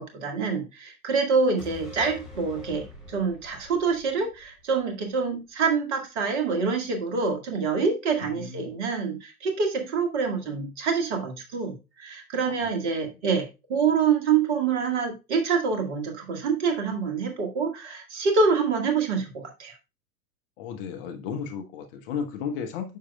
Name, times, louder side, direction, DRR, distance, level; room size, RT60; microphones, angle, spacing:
voice 1, 0.0-19.3 19.6-19.7, right 5 dB, 45° right, 1.9 m, -26 dB
sound 1, 1.6-5.2 5.5-5.6, left 2 dB, ahead, 3.7 m, -44 dB
voice 2, 8.2-8.7 12.5-13.1 20.6-23.0, left 6 dB, 35° left, 1.0 m, -35 dB
9.2 x 6.4 x 2.3 m
figure-of-eight pair, 95°, 47 cm